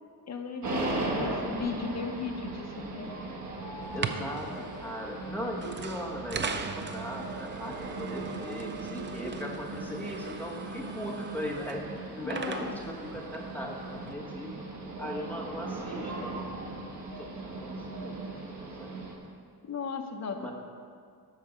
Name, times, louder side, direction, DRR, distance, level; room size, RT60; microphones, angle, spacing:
voice 1, 0.3-3.1 12.2-12.8 15.2-15.3 19.6-20.5, left 5 dB, 45° left, 4 dB, 0.8 m, -36 dB
sound 1, 0.6-19.2, right 2 dB, 50° right, 1.4 m, -38 dB
voice 2, 0.9-1.4 3.9-14.5 15.0-16.4 17.2-18.2 18.8-18.9 20.3-20.5, equal, 5° left, -1 dB, 1.2 m, -38 dB
sound 2, 3.8-14.1, right 5 dB, 30° right, 0.4 m, -40 dB
12.5 x 4.6 x 6.2 m, 2.2 s
wide cardioid pair, 170°, 37 cm